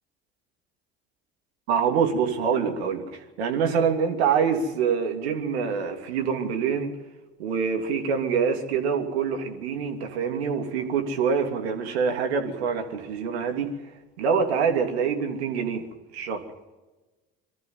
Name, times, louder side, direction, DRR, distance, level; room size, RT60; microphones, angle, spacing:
voice 1, 1.7-6.9 7.4-13.7 14.2-15.8 16.1-16.4, right 6 dB, 80° right, 4 dB, 3.0 m, -25 dB
23.5 x 14.0 x 9.8 m, 1.2 s
hypercardioid pair, 65°, 31 cm